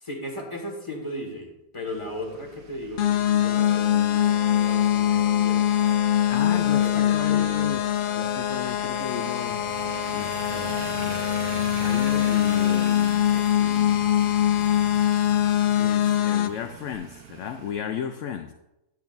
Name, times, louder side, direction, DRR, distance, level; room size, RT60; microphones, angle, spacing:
voice 1, 0.0-5.7 6.3-7.7 12.5-12.8, left 1 dB, 20° left, 1 dB, 1.8 m, -36 dB
sound 1, 1.9-17.7, right 7 dB, 85° right, 1.3 m, -42 dB
sound 2, 3.0-16.5, left 11 dB, 85° left, 0.4 m, -23 dB
sound 3, 3.4-12.9, right 6 dB, 65° right, 0.4 m, -41 dB
voice 2, 6.3-9.8 10.1-14.1 14.6-14.7 15.8-18.5, left 8 dB, 65° left, 7 dB, 0.9 m, -35 dB
12.0 x 9.0 x 2.6 m, 0.90 s
omnidirectional pair, 1.5 m